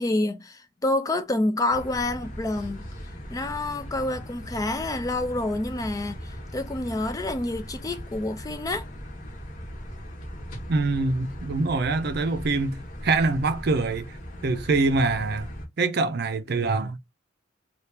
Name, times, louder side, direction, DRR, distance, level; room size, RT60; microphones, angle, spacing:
voice 1, 0.0-2.8 3.3-8.9, left 2 dB, 20° left, 0.4 m, -28 dB
sound 1, 1.7-15.7, equal, 45° left, 0.9 m, -39 dB
voice 2, 10.7-14.0 14.4-15.5 15.8-17.0, right 3 dB, 55° right, 0.5 m, -24 dB
2.8 x 2.4 x 3.3 m
head